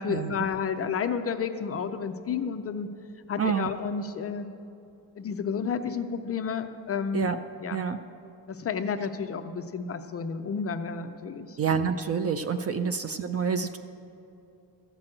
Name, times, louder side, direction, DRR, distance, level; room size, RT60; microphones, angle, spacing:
voice 1, 0.0-2.9 3.3-4.5 5.2-7.3 7.6-7.8 8.5-11.6 12.8-12.9, left 6 dB, 35° left, 8 dB, 0.4 m, -31 dB
voice 2, 3.4-3.7 7.1-7.4 7.7-8.0 11.6-13.8, right 6 dB, 35° right, 10 dB, 0.4 m, -27 dB
14.5 x 6.1 x 8.8 m, 2.8 s
cardioid pair, 160°, 45 cm